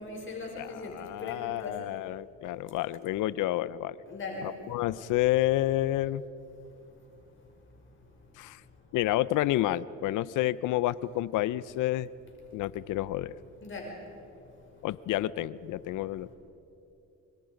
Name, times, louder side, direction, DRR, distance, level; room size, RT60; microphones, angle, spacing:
voice 1, 0.0-1.7 4.1-4.5 13.6-13.9, left 3 dB, 40° left, -1 dB, 5.6 m, -39 dB
voice 2, 0.6-4.0 4.4-6.2 8.4-8.6 8.9-12.1 12.5-13.3 14.8-16.3, left 15 dB, 85° left, 19 dB, 0.6 m, -29 dB
25.5 x 25.5 x 5.2 m, 2.9 s
cardioid pair, 90°, 30 cm